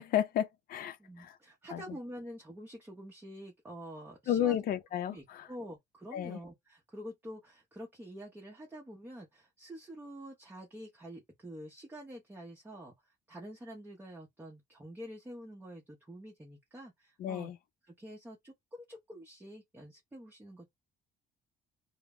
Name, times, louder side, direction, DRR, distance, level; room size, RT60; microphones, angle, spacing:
voice 1, 0.0-1.4 1.7-1.8 4.3-5.5 6.1-6.4 17.2-17.6, left 10 dB, 60° left, 0.5 m, -32 dB
voice 2, 1.0-4.6 5.1-17.5 17.9-20.7, equal, 10° right, 0.7 m, -47 dB
2.1 x 2.0 x 3.5 m
cardioid pair, 110°, 17 cm